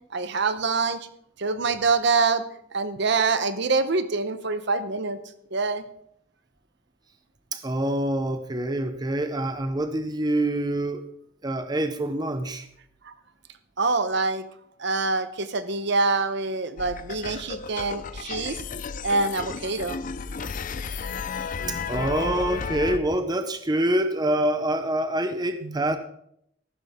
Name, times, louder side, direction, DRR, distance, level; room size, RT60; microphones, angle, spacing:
voice 1, 0.1-1.1 1.4-2.4 2.7-5.2 5.5-5.8 13.0-13.1 13.8-14.5 14.8-18.6 19.0-20.0 25.6-26.0, right 3 dB, 60° right, 11 dB, 0.8 m, -25 dB
voice 2, 7.5-11.0 11.4-12.7 21.6-26.0, right 1 dB, 20° right, 9 dB, 0.7 m, -26 dB
sound 1, 16.8-23.0, left 5 dB, 40° left, 0.5 m, -33 dB
14.5 x 12.0 x 3.6 m, 0.72 s
head